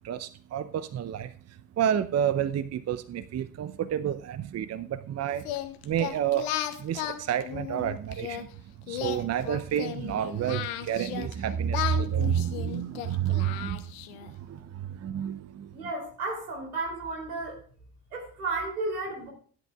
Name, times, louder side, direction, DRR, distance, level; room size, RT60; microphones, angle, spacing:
voice 1, 0.0-1.3 1.8-5.5 5.8-6.5 6.8-8.5 8.9-13.8 14.2-15.7, right 9 dB, 35° right, 15 dB, 0.7 m, -29 dB
Singing, 5.4-8.4 8.9-11.3 11.7-14.3, left 12 dB, 70° left, 1.1 m, -35 dB
voice 2, 15.7-17.6 18.1-19.3, right 3 dB, 85° right, 0 dB, 3.2 m, -33 dB
16.0 x 10.5 x 2.4 m, 0.44 s
figure-of-eight pair, 45°, 43 cm